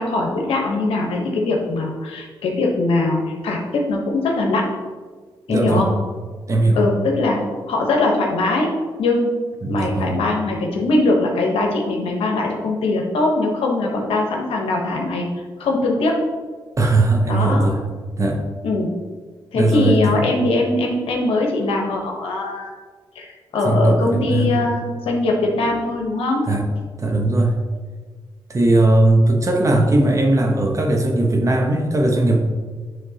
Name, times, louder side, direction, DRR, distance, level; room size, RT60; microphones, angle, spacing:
voice 1, 0.0-4.7 5.5-5.9 6.7-8.7 9.0-9.3 9.7-15.3 15.6-16.2 17.3-17.7 18.6-18.9 19.5-22.7 23.1-26.4, left 2 dB, 90° left, 0 dB, 1.1 m, -21 dB
voice 2, 5.5-5.9 6.5-6.8 9.6-10.2 16.8-17.8 18.2-18.4 19.5-20.0 23.6-24.6 26.5-26.6 27.0-27.6 28.5-32.4, right 2 dB, 35° right, 2 dB, 1.0 m, -18 dB
9.7 x 3.5 x 2.9 m, 1.5 s
cardioid pair, 75°, 9 cm